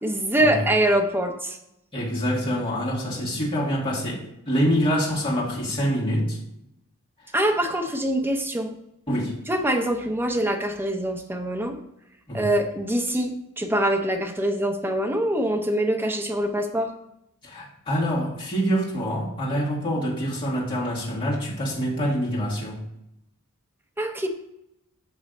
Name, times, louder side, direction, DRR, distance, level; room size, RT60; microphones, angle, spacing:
voice 1, 0.0-1.6 7.3-8.7 9.5-11.8 12.3-16.9 24.0-24.3, right 1 dB, 10° right, 3 dB, 0.6 m, -24 dB
voice 2, 1.9-6.4 9.1-9.4 12.3-12.5 17.4-22.8, equal, 25° left, -6 dB, 1.8 m, -26 dB
6.0 x 3.2 x 5.1 m, 0.81 s
head